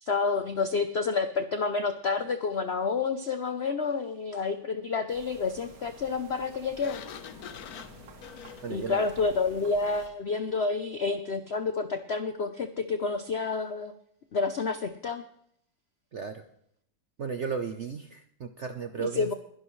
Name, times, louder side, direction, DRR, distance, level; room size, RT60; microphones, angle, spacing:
voice 1, 0.0-7.0 8.7-13.9 14.3-15.2 19.0-19.3, left 4 dB, 90° left, 9 dB, 0.5 m, -29 dB
sound 1, 5.1-10.1, right 3 dB, 50° right, 1.9 m, -52 dB
Sliding door, 6.8-9.5, left 8 dB, 60° left, 1.2 m, -45 dB
voice 2, 8.6-9.1 16.1-16.4 17.2-19.3, right 6 dB, 65° right, 8 dB, 0.7 m, -35 dB
21.5 x 11.5 x 3.2 m, 0.71 s
omnidirectional pair, 2.1 m